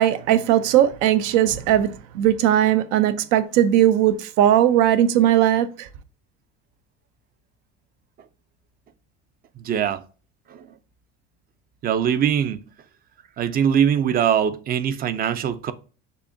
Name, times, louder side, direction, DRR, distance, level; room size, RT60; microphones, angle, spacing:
voice 1, 0.0-5.9, right 11 dB, 80° right, 0.6 m, -18 dB
voice 2, 9.6-10.0 10.5-10.7 11.8-12.6 13.4-15.7, right 8 dB, 30° right, 0.4 m, -22 dB
6.6 x 2.8 x 2.6 m
cardioid pair, 135°, 29 cm